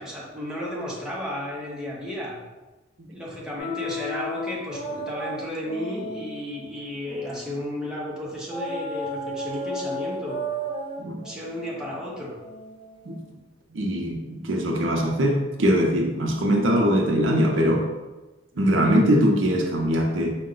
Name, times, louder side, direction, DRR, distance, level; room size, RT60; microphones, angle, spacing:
voice 1, 0.0-2.4 3.1-10.4 11.2-12.4, left 1 dB, 5° right, -5 dB, 0.8 m, -33 dB
sound 1, 3.6-7.7 8.5-13.3, equal, 30° left, 0.6 m, -34 dB
voice 2, 13.7-17.9 18.6-20.4, equal, 70° right, 1 dB, 0.6 m, -22 dB
4.7 x 2.2 x 3.7 m, 1.1 s
head